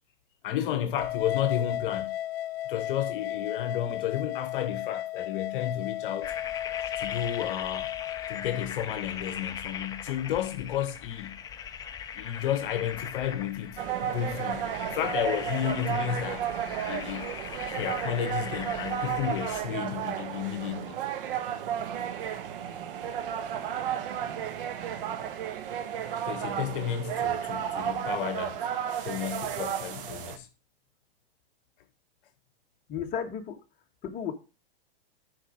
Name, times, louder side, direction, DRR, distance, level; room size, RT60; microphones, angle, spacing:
voice 1, 0.4-2.2 2.7-6.3 7.0-7.9 8.3-11.4 12.1-16.5 16.9-17.3 17.7-21.0 26.2-28.7 29.0-30.5, left 10 dB, 60° left, 1.1 m, -32 dB
sound 1, 1.0-8.7, left 13 dB, 85° left, 0.5 m, -34 dB
sound 2, 6.2-19.6, left 8 dB, 15° left, 0.5 m, -40 dB
sound 3, 13.8-30.4, right 9 dB, 60° right, 1.3 m, -33 dB
voice 2, 32.9-33.6 34.0-34.3, left 8 dB, 30° left, 1.4 m, -33 dB
9.9 x 5.1 x 5.1 m
hypercardioid pair, 140°, 30 cm